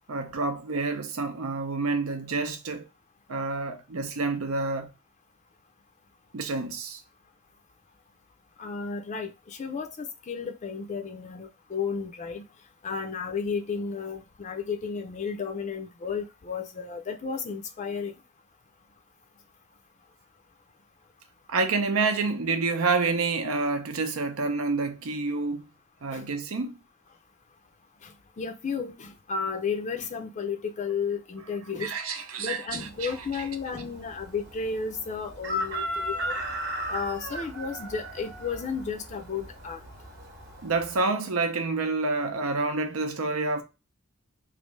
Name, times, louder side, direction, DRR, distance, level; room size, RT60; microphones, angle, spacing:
voice 1, 0.1-2.9 3.3-4.9 6.3-7.0 21.5-25.7 26.0-26.7 31.8-33.4 40.6-43.6, right 3 dB, 90° right, 0.7 m, -28 dB
voice 2, 8.6-12.4 12.8-18.1 26.1-26.2 28.0-31.9 32.4-36.4 36.9-39.8, left 5 dB, 35° left, 0.4 m, -33 dB
Chicken rooster, 32.7-41.0, equal, 50° right, 0.9 m, -36 dB
3.2 x 2.5 x 3.1 m
head